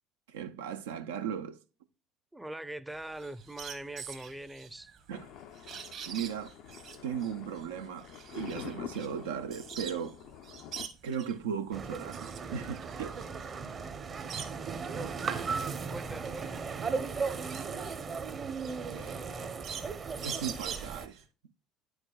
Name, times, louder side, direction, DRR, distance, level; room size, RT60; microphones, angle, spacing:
voice 1, 0.3-1.6 5.1-5.3 6.1-6.5 7.0-10.2 11.0-13.2 18.9-19.2 20.2-21.2, right 8 dB, 80° right, 0.4 m, -37 dB
voice 2, 2.3-4.9 15.9-16.5, right 1 dB, 10° right, 0.5 m, -42 dB
sound 1, 2.9-10.1 10.4-11.4 11.9-14.8 15.2-21.2, right 7 dB, 60° right, 1.2 m, -45 dB
Thunder, 5.1-10.9, left 9 dB, 65° left, 0.4 m, -47 dB
sound 2, 11.7-21.1, right 5 dB, 45° right, 0.8 m, -36 dB
9.8 x 4.7 x 2.2 m
hypercardioid pair, 60°, 0 cm